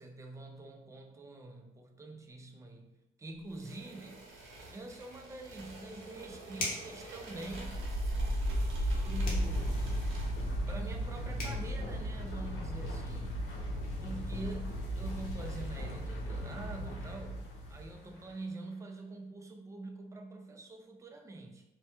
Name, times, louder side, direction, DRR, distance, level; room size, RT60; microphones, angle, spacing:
voice 1, 0.0-4.3 4.7-7.8 9.0-10.1 10.7-13.4 14.0-21.6, right 2 dB, 15° right, 3 dB, 0.3 m, -45 dB
sound 1, 3.5-10.6, right 2 dB, 85° right, 0.6 m, -49 dB
Finger Snap, 6.6-7.0 9.2-9.5 11.0-11.1 11.4-11.6, left 1 dB, 45° left, 0.8 m, -37 dB
sound 2, 7.4-18.2, equal, 75° left, 0.7 m, -35 dB
2.1 x 2.1 x 2.9 m, 0.95 s
cardioid pair, 90°, 20 cm